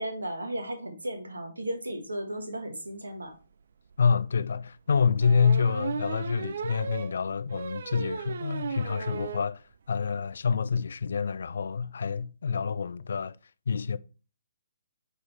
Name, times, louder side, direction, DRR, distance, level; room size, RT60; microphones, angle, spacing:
voice 1, 0.0-3.3, right 1 dB, 70° right, 1.7 m, -35 dB
sound 1, 3.4-3.5 3.9-4.0 5.2-9.5 9.9-10.0 10.2-10.3 10.5-10.8, right 6 dB, 50° right, 0.4 m, -36 dB
voice 2, 4.0-13.4 13.7-14.0, left 6 dB, 55° left, 0.4 m, -27 dB
8.5 x 4.0 x 3.2 m
figure-of-eight pair, 130°, 0 cm